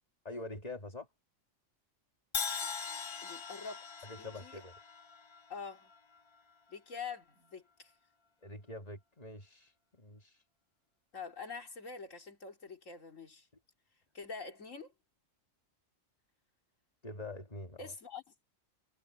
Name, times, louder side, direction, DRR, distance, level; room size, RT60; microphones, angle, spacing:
voice 1, 0.2-1.1 4.0-4.7 8.4-10.4 17.0-17.9, left 2 dB, 30° left, 2.3 m, -45 dB
Crash cymbal, 2.3-6.4, left 6 dB, 50° left, 0.3 m, -41 dB
voice 2, 3.2-4.6 5.5-5.9 6.7-7.9 11.1-13.5 14.1-14.9 17.8-18.2, left 5 dB, 85° left, 3.0 m, -45 dB
omnidirectional pair, 1.3 m